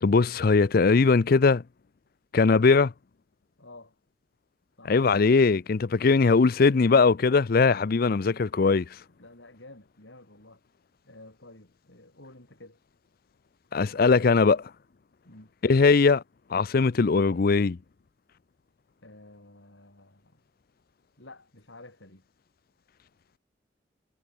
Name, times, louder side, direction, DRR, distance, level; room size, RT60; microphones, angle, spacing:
voice 1, 0.0-1.6 2.3-2.9 4.9-8.9 13.7-14.6 15.6-16.2 16.5-17.8, left 4 dB, 55° left, 0.5 m, -20 dB
voice 2, 3.6-3.9 4.8-5.0 9.2-10.6 11.0-12.8 15.2-15.5 19.0-20.4 21.2-22.2, left 2 dB, 90° left, 6.6 m, -50 dB
head